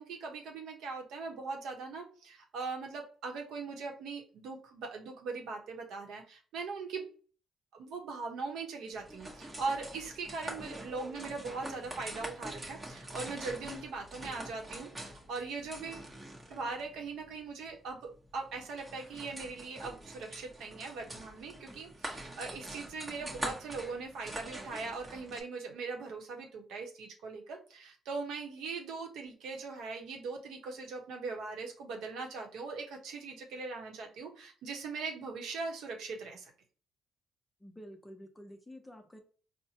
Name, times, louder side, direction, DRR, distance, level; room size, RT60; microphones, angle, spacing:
voice 1, 0.0-7.1 7.7-16.1 16.5-36.5, right 4 dB, 80° right, 2 dB, 0.9 m, -40 dB
sound 1, 8.9-25.4, right 1 dB, 20° right, 0.9 m, -45 dB
voice 2, 37.6-39.2, equal, 15° left, 4 dB, 0.7 m, -50 dB
4.3 x 2.1 x 2.7 m, 0.40 s
cardioid pair, 90°, 0 cm